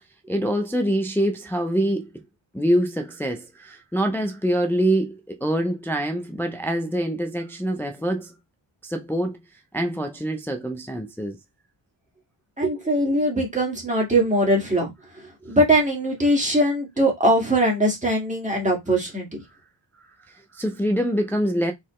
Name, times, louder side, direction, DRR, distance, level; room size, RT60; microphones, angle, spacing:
voice 1, 0.3-2.1 2.5-8.3 8.8-9.4 9.7-11.4 20.3-21.7, equal, 5° left, 0.5 m, -25 dB
voice 2, 12.6-19.3, right 1 dB, 15° right, 1.8 m, -21 dB
4.3 x 3.9 x 3.1 m
wide cardioid pair, 155°, 47 cm